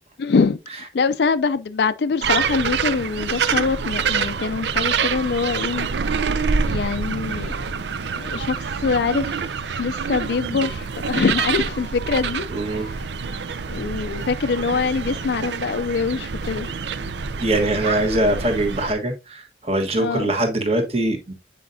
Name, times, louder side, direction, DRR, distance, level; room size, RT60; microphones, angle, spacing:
voice 1, 0.2-5.9 6.6-7.7 8.1-12.5 12.7-13.0 13.7-16.7 20.0-20.3, left 4 dB, 65° left, 0.4 m, -24 dB
sound 1, 2.2-18.9, right 5 dB, 75° right, 0.5 m, -26 dB
voice 2, 12.5-12.9 17.4-21.3, right 1 dB, 35° right, 1.4 m, -22 dB
8.4 x 5.1 x 2.7 m
head